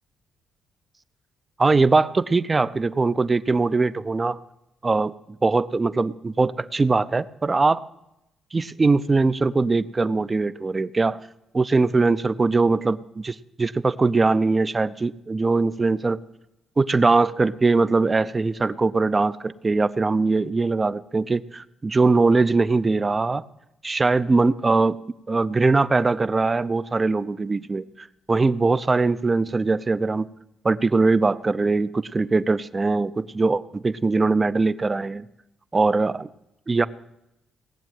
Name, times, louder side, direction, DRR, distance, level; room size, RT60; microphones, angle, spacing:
voice 1, 1.6-4.4 4.8-5.1 5.4-7.8 8.5-11.2 11.5-16.2 16.8-23.4 23.8-25.0 25.3-30.3 30.6-35.2 35.7-36.3 36.7-36.9, right 3 dB, 25° right, 14 dB, 0.6 m, -21 dB
18.5 x 7.5 x 9.2 m, 0.87 s
cardioid pair, 90°, 0 cm